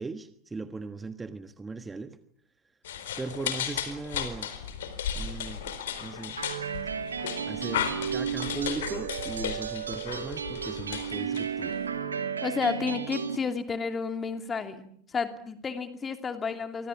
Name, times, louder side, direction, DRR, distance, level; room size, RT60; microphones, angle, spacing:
voice 1, 0.0-2.2 3.2-4.5 5.1-5.6 6.0-6.4 7.5-11.7, right 3 dB, 10° right, 11 dB, 1.4 m, -38 dB
sound 1, 2.8-11.9, left 8 dB, 60° left, 4.2 m, -35 dB
sound 2, 6.4-13.4, right 7 dB, 70° right, 2.6 m, -33 dB
voice 2, 12.4-16.9, left 5 dB, 20° left, 8 dB, 2.8 m, -31 dB
29.5 x 25.5 x 7.2 m, 0.69 s
figure-of-eight pair, 90°, 0 cm